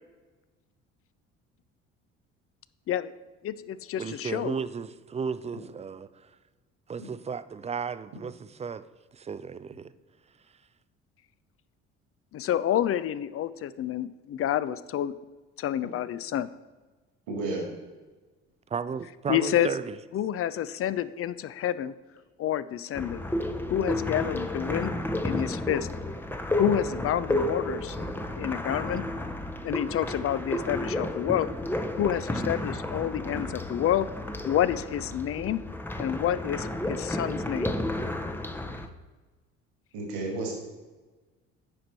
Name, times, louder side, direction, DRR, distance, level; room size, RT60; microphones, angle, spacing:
voice 1, 3.4-4.6 12.3-15.1 15.6-16.5 19.3-19.7 20.1-21.9 22.4-23.2 23.7-25.0 25.2-25.9 26.6-28.0 28.4-29.0 29.6-31.5 31.9-34.1 34.5-35.6 36.0-37.7, left 11 dB, 40° left, 16 dB, 0.5 m, -28 dB
voice 2, 4.0-6.1 6.9-8.8 9.1-9.9 18.7-19.9, right 6 dB, 20° right, 14 dB, 0.4 m, -34 dB
voice 3, 17.3-17.7 39.9-40.5, right 2 dB, 70° right, 0 dB, 2.2 m, -31 dB
sound 1, 23.0-38.9, left 1 dB, 5° left, 0.7 m, -32 dB
9.6 x 5.1 x 4.5 m, 1.3 s
hypercardioid pair, 55°, 36 cm